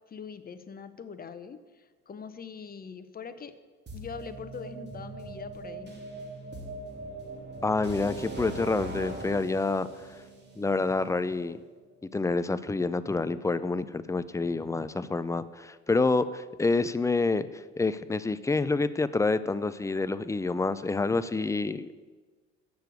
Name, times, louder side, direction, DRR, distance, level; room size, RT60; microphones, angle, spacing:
voice 1, 0.0-3.5 3.9-5.9, left 6 dB, 30° left, 11 dB, 0.9 m, -42 dB
sound 1, 3.9-11.7, right 2 dB, 30° right, 2.3 m, -41 dB
voice 2, 7.6-9.9 10.6-11.6 12.1-22.1, left 3 dB, 10° left, 14 dB, 0.5 m, -28 dB
7.8 x 6.7 x 8.1 m, 1.3 s
hypercardioid pair, 65°, 33 cm